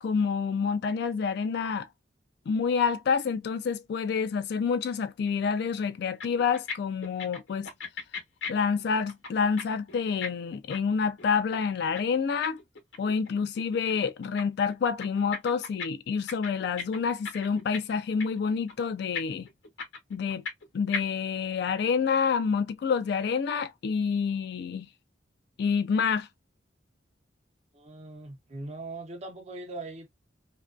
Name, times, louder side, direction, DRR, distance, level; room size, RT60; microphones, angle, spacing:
voice 1, 0.0-1.9 2.5-7.7 8.5-12.6 13.0-19.5 20.1-20.4 20.7-24.9 25.6-26.3, left 6 dB, 60° left, 0.3 m, -28 dB
sound 1, 5.9-6.0 6.2-6.7 7.0-9.6 9.9-13.3 13.6-14.4 14.7-15.9 16.1-17.9 18.2-18.4 18.7-18.8 19.1-20.6 20.9-21.0, left 5 dB, 80° left, 1.0 m, -36 dB
voice 2, 27.7-30.1, right 2 dB, 35° right, 0.5 m, -40 dB
2.6 x 2.2 x 2.2 m
head